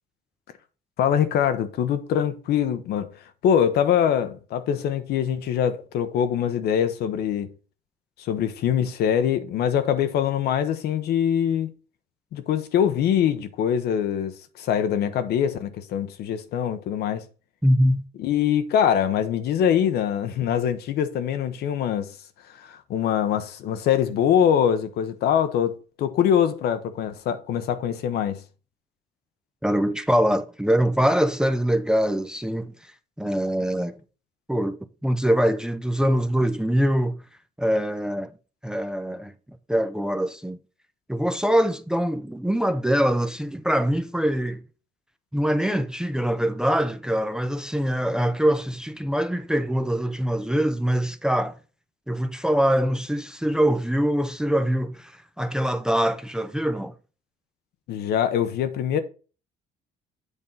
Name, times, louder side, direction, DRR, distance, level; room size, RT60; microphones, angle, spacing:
voice 1, 1.0-3.1 3.4-7.5 8.2-11.7 12.3-17.3 18.2-22.2 22.5-28.4 57.9-59.0, left 9 dB, 70° left, 0.9 m, -23 dB
voice 2, 17.6-18.0 29.6-32.7 33.2-34.0 34.5-37.2 37.6-38.3 38.6-39.3 39.7-40.6 41.1-44.6 45.3-51.5 52.1-56.9, equal, 5° right, 0.5 m, -23 dB
8.2 x 3.6 x 5.4 m
cardioid pair, 110°, 17 cm